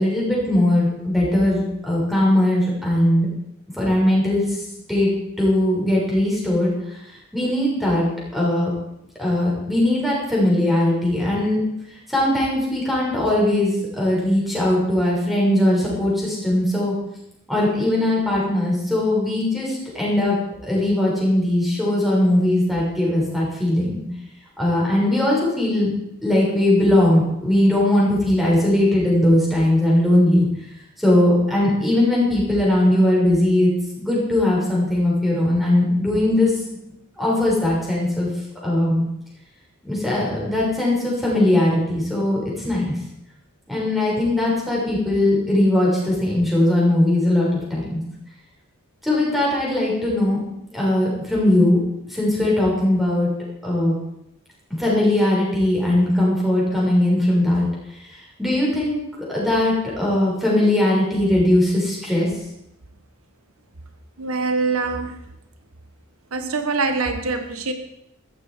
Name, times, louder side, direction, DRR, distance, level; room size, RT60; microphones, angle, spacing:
voice 1, 0.0-3.3 3.7-5.1 5.4-8.1 8.3-8.7 9.2-11.6 12.1-16.9 17.5-20.3 20.6-24.0 24.6-25.9 26.2-30.5 31.0-33.7 34.0-36.6 37.2-38.3 38.6-39.0 39.8-43.0 43.7-48.0 49.0-50.4 50.7-51.8 52.1-53.3 53.6-53.9 54.7-59.0 59.3-62.3, left 1 dB, ahead, -5 dB, 6.5 m, -19 dB
voice 2, 64.2-65.1 66.3-67.7, right 4 dB, 85° right, 8 dB, 1.4 m, -24 dB
15.0 x 14.0 x 5.0 m, 0.82 s
head